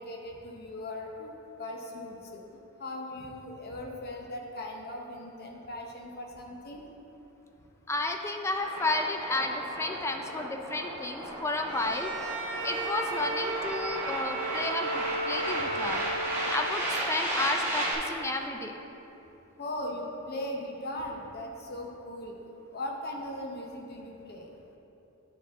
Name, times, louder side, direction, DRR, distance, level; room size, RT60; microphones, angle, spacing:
voice 1, 0.0-1.3 1.6-2.4 2.8-6.8 19.6-22.4 22.7-24.5, left 1 dB, 45° left, 1 dB, 0.8 m, -38 dB
voice 2, 7.9-12.1 12.6-16.0 16.5-18.8, left 2 dB, 10° left, 4 dB, 0.3 m, -32 dB
sound 1, 8.6-17.9, right 1 dB, 10° right, 1.1 m, -34 dB
Bowed string instrument, 11.6-16.9, right 2 dB, 60° right, 0.8 m, -35 dB
9.6 x 4.7 x 3.5 m, 3.0 s
head